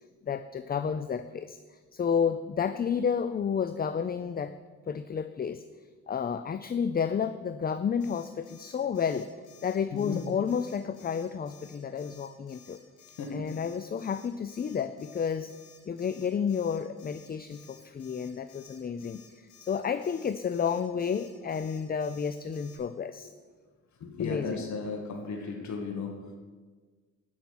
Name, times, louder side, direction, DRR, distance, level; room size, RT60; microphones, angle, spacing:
voice 1, 0.2-4.5 4.9-5.6 6.1-9.3 9.6-12.8 13.3-15.5 15.9-19.2 19.6-23.3 24.2-24.6, left 7 dB, 30° left, 11 dB, 0.6 m, -31 dB
Alarm, 8.0-22.8, left 8 dB, 85° left, 4.5 m, -56 dB
voice 2, 9.9-10.3 13.2-13.5 24.0-26.4, left 4 dB, 65° left, 2 dB, 2.0 m, -35 dB
13.5 x 5.9 x 9.5 m, 1.4 s
cardioid pair, 90°, 30 cm